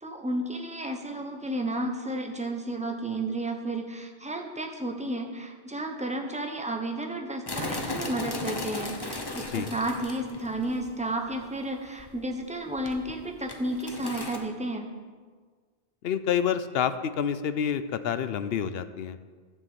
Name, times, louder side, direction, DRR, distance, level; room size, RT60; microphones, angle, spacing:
voice 1, 0.0-14.9, right 1 dB, 5° right, 3 dB, 1.0 m, -32 dB
sound 1, 7.5-10.9 11.3-11.4 12.0-12.4 12.8-14.4, left 2 dB, 25° left, 1.0 m, -36 dB
voice 2, 16.0-19.2, left 8 dB, 70° left, 12 dB, 0.8 m, -28 dB
11.0 x 6.4 x 7.7 m, 1.5 s
omnidirectional pair, 1.1 m